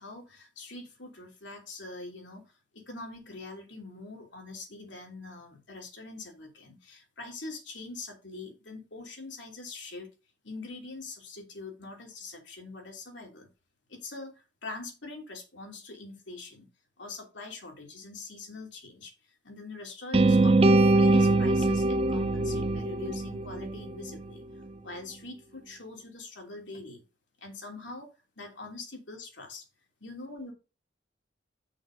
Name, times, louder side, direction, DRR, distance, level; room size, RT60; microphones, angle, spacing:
voice 1, 0.0-10.1 10.4-13.5 13.9-16.7 17.0-24.4 24.8-27.0 27.4-29.6 30.0-30.5, left 3 dB, 80° left, 2 dB, 2.9 m, -43 dB
sound 1, 20.1-24.2, right 2 dB, 30° right, 0.6 m, -23 dB
6.3 x 6.1 x 5.1 m, 0.29 s
head